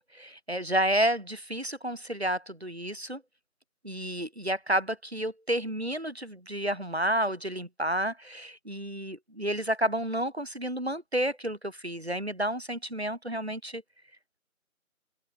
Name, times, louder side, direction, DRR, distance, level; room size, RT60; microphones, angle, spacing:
voice 1, 0.1-3.2 3.8-13.8, right 1 dB, 45° right, 4.9 m, -30 dB
open air
figure-of-eight pair, 180°, 43 cm